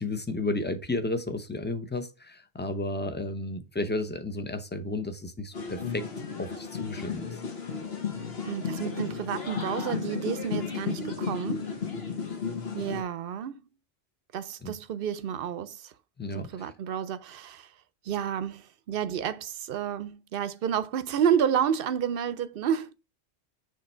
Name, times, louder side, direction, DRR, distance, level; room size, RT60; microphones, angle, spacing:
voice 1, 0.0-6.1 6.4-7.4 14.6-14.7 16.2-16.7, left 2 dB, 10° left, 0.5 m, -33 dB
sound 1, 5.5-13.0, left 6 dB, 65° left, 1.5 m, -34 dB
voice 2, 8.5-11.7 12.7-13.6 14.3-15.9 16.3-17.7 18.0-22.9, right 8 dB, 60° right, 0.7 m, -30 dB
6.7 x 3.2 x 4.3 m
omnidirectional pair, 1.1 m